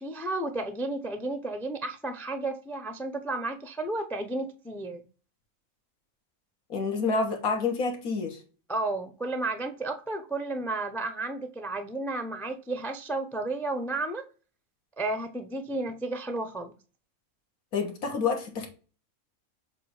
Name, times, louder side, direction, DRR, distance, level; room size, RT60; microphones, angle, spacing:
voice 1, 0.0-5.0 8.7-14.2 15.0-16.7, right 2 dB, ahead, 7 dB, 0.4 m, -32 dB
voice 2, 6.7-8.4 17.7-18.7, left 4 dB, 85° left, 2 dB, 1.8 m, -28 dB
7.5 x 2.7 x 4.8 m, 0.35 s
omnidirectional pair, 1.5 m